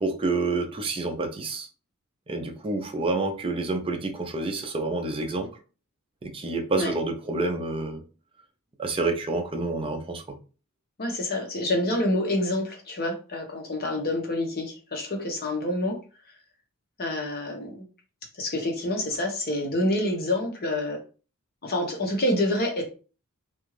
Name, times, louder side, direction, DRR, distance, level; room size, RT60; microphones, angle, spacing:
voice 1, 0.0-1.7 2.3-5.5 6.2-8.0 8.8-10.2, right 3 dB, 25° right, 5 dB, 0.5 m, -28 dB
voice 2, 11.0-16.0 17.0-17.8 18.4-21.0 21.6-22.8, left 1 dB, 45° left, 1 dB, 0.9 m, -27 dB
2.5 x 2.3 x 3.1 m, 0.35 s
head